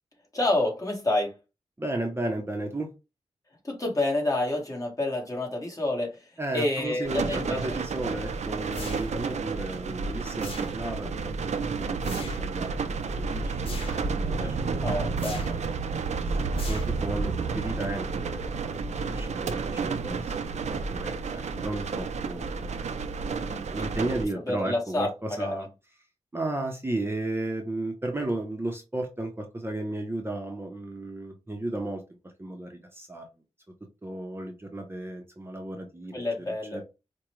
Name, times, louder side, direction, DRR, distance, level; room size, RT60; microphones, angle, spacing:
voice 1, 0.3-1.3 3.6-7.8 14.8-15.4 23.3-23.6 24.4-25.5 36.1-36.8, left 2 dB, 30° left, 1.5 m, -28 dB
voice 2, 1.8-2.9 6.4-11.5 11.8-14.8 15.2-15.9 16.3-25.7 26.3-32.0 32.4-33.2 34.0-36.2 36.7-36.8, right 2 dB, 20° right, 0.7 m, -34 dB
sound 1, 7.0-24.3, right 4 dB, 80° right, 0.5 m, -31 dB
sound 2, 8.7-9.4 10.4-11.1 12.0-12.5 13.7-14.2 15.2-15.7 16.6-17.2, left 2 dB, 50° left, 1.3 m, -41 dB
4.8 x 2.2 x 3.0 m
wide cardioid pair, 90°, 12 cm